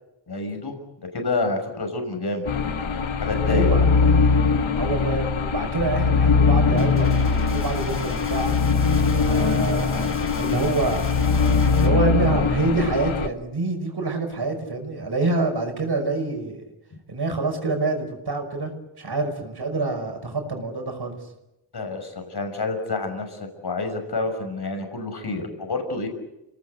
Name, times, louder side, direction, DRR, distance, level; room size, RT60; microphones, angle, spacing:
voice 1, 0.3-2.7 3.2-3.9 21.7-26.1, left 3 dB, 55° left, 6 dB, 6.4 m, -28 dB
sound 1, 2.5-13.3, left 5 dB, 75° left, 1.5 m, -21 dB
voice 2, 3.5-3.9 4.8-8.6 9.3-11.0 11.8-16.6 17.1-18.7 19.0-21.2, right 3 dB, 50° right, 4 dB, 5.8 m, -26 dB
sound 2, 6.8-11.9, left 2 dB, 25° left, 6.2 m, -38 dB
30.0 x 18.5 x 8.3 m, 0.94 s
wide cardioid pair, 95°, 48 cm